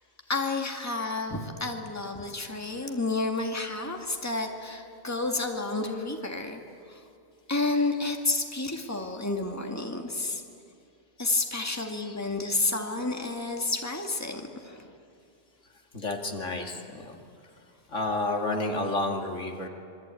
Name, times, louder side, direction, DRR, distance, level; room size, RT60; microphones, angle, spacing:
voice 1, 0.3-6.6 6.9-7.0 7.5-10.4 11.2-14.9, left 3 dB, 15° left, 3 dB, 2.0 m, -30 dB
voice 2, 15.9-17.1 17.9-19.7, left 2 dB, 80° left, 2 dB, 2.7 m, -30 dB
26.5 x 23.0 x 9.1 m, 2.5 s
omnidirectional pair, 1.3 m